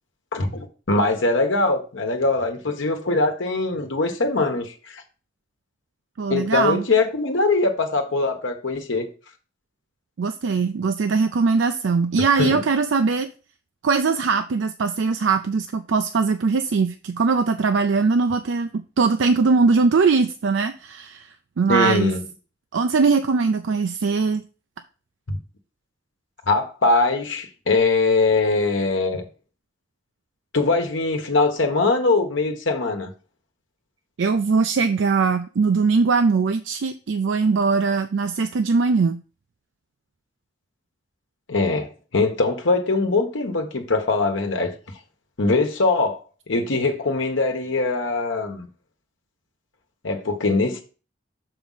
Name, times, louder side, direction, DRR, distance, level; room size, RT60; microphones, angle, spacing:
voice 1, 0.3-5.0 6.3-9.1 12.4-12.6 21.7-22.2 25.3-25.4 26.5-29.2 30.5-33.1 41.5-44.7 45.4-46.2 46.5-48.7 50.0-50.8, left 3 dB, 80° left, 1.2 m, -22 dB
voice 2, 6.2-6.8 10.2-13.3 13.8-21.3 21.6-22.1 22.7-24.4 34.2-39.2, right 4 dB, 70° right, 0.4 m, -21 dB
6.2 x 4.9 x 3.9 m
head